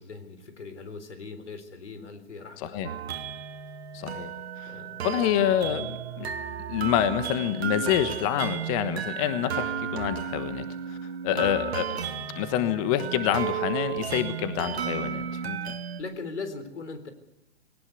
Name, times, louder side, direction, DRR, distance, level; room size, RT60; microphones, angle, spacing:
voice 1, 0.0-3.2 4.7-5.1 11.3-11.6 16.0-17.1, left 4 dB, 85° left, 10 dB, 4.0 m, -40 dB
voice 2, 2.6-2.9 3.9-4.3 4.6-4.8 5.0-6.3 6.7-10.6 11.2-11.8 12.3-15.6, left 11 dB, 30° left, 10 dB, 1.3 m, -27 dB
sound 1, 2.8-16.0, right 8 dB, 65° right, 2.3 m, -33 dB
20.5 x 18.5 x 8.1 m, 0.95 s
hypercardioid pair, 140°, 34 cm